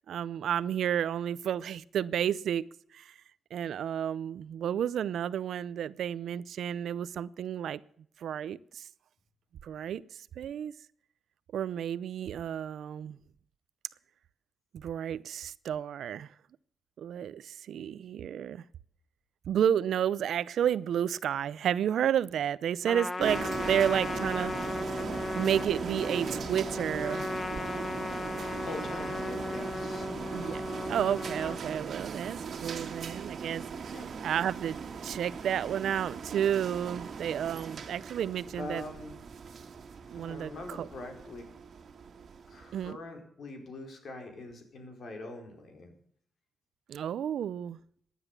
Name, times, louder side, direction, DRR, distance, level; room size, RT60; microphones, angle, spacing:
voice 1, 0.1-3.1 3.5-7.8 8.2-8.9 9.6-10.0 10.4-10.7 11.5-13.2 14.7-16.3 17.0-18.6 19.5-24.5 25.3-27.3 30.3-30.6 30.9-38.8 40.1-40.9 42.7-43.0 46.9-47.8, right 9 dB, 80° right, 0.6 m, -31 dB
Trumpet, 22.8-31.6, left 2 dB, 25° left, 1.2 m, -36 dB
sound 1, 23.2-42.9, right 6 dB, 60° right, 1.9 m, -39 dB
voice 2, 28.6-30.2 33.9-34.3 38.6-39.1 40.1-41.4 42.5-45.9, left 2 dB, 60° left, 4.8 m, -43 dB
16.0 x 10.0 x 6.8 m
cardioid pair, 110°, 0 cm